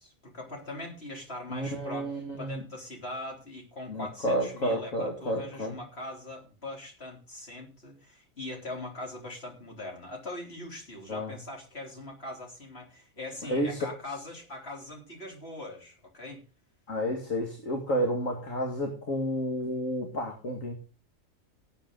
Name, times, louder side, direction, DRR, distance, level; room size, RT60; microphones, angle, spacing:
voice 1, 0.0-2.1 2.4-16.4, left 2 dB, 50° left, 0 dB, 4.0 m, -41 dB
voice 2, 1.5-2.6 3.9-5.8 11.1-11.3 13.5-13.9 16.9-20.7, equal, 75° left, 2 dB, 2.7 m, -30 dB
18.0 x 8.4 x 3.9 m, 0.34 s
omnidirectional pair, 1.4 m